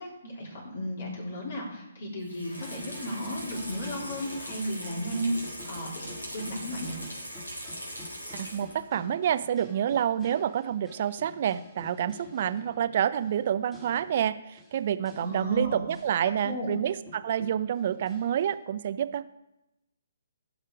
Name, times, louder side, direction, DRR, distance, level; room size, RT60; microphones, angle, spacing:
voice 1, 0.0-5.3 5.7-6.0 6.3-7.0 15.2-15.8 16.4-16.7, equal, 55° left, -4 dB, 4.0 m, -34 dB
Water tap faucet / Sink (filling or washing), 2.2-8.9 9.3-9.4, equal, 90° left, 4.2 m, -41 dB
sound 1, 2.5-16.2 16.7-16.8 17.1-18.6, left 2 dB, 10° left, 2.3 m, -49 dB
voice 2, 8.3-19.3, right 9 dB, 45° right, 14 dB, 0.6 m, -28 dB
15.0 x 6.6 x 4.9 m, 0.92 s
figure-of-eight pair, 135°, 0 cm